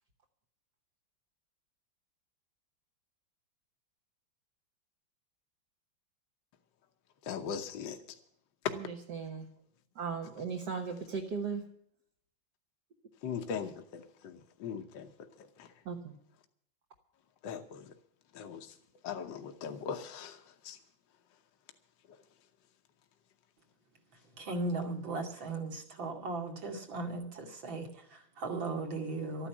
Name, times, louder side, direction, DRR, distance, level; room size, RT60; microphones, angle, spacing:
voice 1, 7.3-8.0 13.2-15.1 15.6-15.7 17.4-17.9 18.3-18.7 19.0-20.4 20.6-20.8, left 7 dB, 70° left, 1.7 m, -39 dB
voice 2, 8.7-9.5 10.0-11.6 15.9-16.2, right 5 dB, 60° right, 1.8 m, -37 dB
voice 3, 24.4-29.5, right 3 dB, 80° right, 3.1 m, -37 dB
13.0 x 10.0 x 8.3 m
omnidirectional pair, 2.1 m